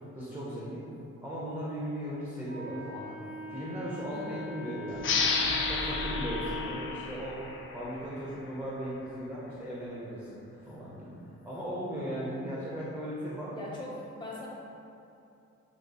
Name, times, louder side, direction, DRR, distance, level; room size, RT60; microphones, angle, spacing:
voice 1, 0.1-0.8 1.2-3.2 3.5-5.3 5.7-7.4 7.7-10.4 10.6-11.2 11.4-13.8, equal, 5° right, -8 dB, 0.6 m, -37 dB
Wind instrument woodwind instrument, 2.4-6.8, left 2 dB, 80° right, 1.1 m, -41 dB
voice 2, 4.1-4.5 13.5-14.5, left 1 dB, 15° left, -6 dB, 1.0 m, -41 dB
sound 1, 5.0-8.3, left 4 dB, 40° left, 0.5 m, -31 dB
5.9 x 2.6 x 2.3 m, 2.7 s
cardioid pair, 90°, 30 cm